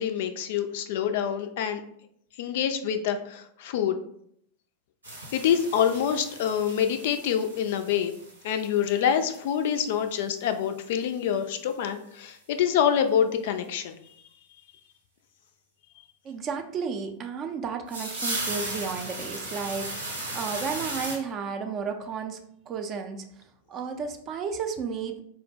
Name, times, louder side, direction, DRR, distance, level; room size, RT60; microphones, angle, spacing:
voice 1, 0.0-1.8 2.4-4.0 5.3-8.1 8.4-14.0, left 8 dB, 55° left, 8 dB, 0.3 m, -26 dB
sound 1, 5.0-10.1 10.4-10.5 10.9-11.0 11.1-11.2 11.7-11.8 13.6-13.7 17.9-21.2, right 2 dB, 80° right, 1.0 m, -36 dB
voice 2, 16.2-22.4 22.7-23.3 23.7-25.2, right 5 dB, 30° right, 5 dB, 0.4 m, -33 dB
4.2 x 2.1 x 3.3 m, 0.69 s
figure-of-eight pair, 90°, 0 cm